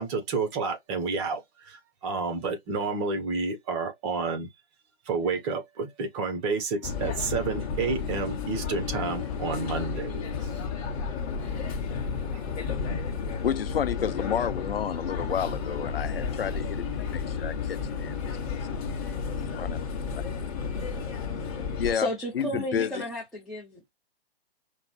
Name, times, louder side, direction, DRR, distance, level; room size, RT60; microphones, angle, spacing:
voice 1, 0.0-4.5 5.0-10.5, right 4 dB, 30° right, 1.2 m, -30 dB
sound 1, 6.8-21.9, left 5 dB, 35° left, 1.2 m, -32 dB
voice 2, 13.4-18.5 19.4-20.2 21.8-22.1 22.3-23.0, left 8 dB, 65° left, 0.5 m, -31 dB
voice 3, 21.9-23.9, equal, ahead, 0.5 m, -33 dB
5.1 x 2.5 x 3.2 m
figure-of-eight pair, 130°, 32 cm